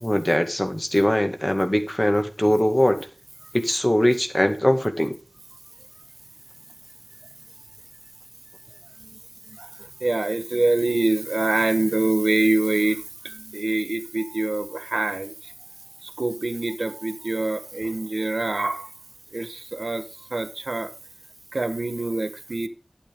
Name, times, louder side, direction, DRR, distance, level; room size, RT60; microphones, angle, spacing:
voice 1, 0.0-3.0 3.5-5.1, left 1 dB, 25° left, 2.0 m, -21 dB
voice 2, 10.0-15.3 16.2-18.9 19.3-20.0 20.3-20.9 21.5-22.7, right 2 dB, 80° right, 1.3 m, -25 dB
12.0 x 8.3 x 3.7 m
wide cardioid pair, 45°, 0 cm